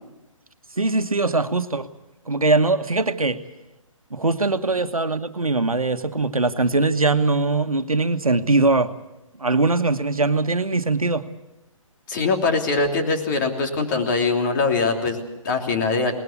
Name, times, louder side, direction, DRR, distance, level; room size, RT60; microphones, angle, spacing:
voice 1, 0.8-1.9 2.3-3.4 4.1-8.9 9.4-11.3, right 3 dB, 90° right, 10 dB, 1.4 m, -21 dB
voice 2, 12.1-16.1, left 4 dB, 35° left, 3 dB, 3.1 m, -22 dB
20.5 x 19.5 x 8.3 m, 0.97 s
figure-of-eight pair, 140°, 18 cm